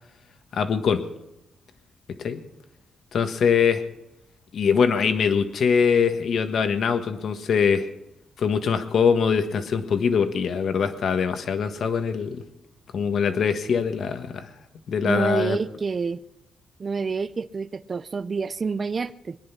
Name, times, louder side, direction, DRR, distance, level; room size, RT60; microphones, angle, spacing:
voice 1, 0.5-1.1 2.2-2.4 3.1-3.8 4.5-7.9 8.4-12.4 12.9-14.5 14.9-15.6, left 6 dB, 60° left, 8 dB, 1.5 m, -23 dB
voice 2, 15.0-16.2 16.8-19.4, right 4 dB, 35° right, 14 dB, 0.5 m, -28 dB
22.0 x 10.5 x 5.9 m, 0.85 s
cardioid pair, 125°, 0 cm